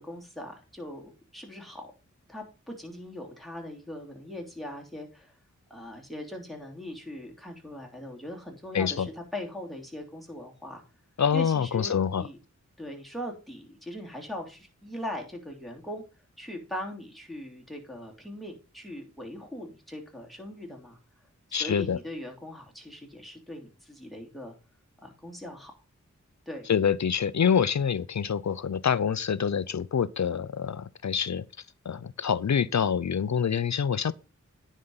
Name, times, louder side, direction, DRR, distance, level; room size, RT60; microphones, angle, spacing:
voice 1, 0.0-1.9 2.3-5.3 5.7-10.8 11.3-12.4 12.8-16.0 16.4-21.0 21.5-24.5 25.0-25.7 26.4-26.7, left 1 dB, ahead, 3.2 m, -40 dB
voice 2, 8.7-9.1 11.2-12.3 21.5-22.0 26.7-31.5 31.9-34.1, left 7 dB, 65° left, 0.6 m, -26 dB
9.7 x 5.0 x 5.5 m
wide cardioid pair, 55°, 30 cm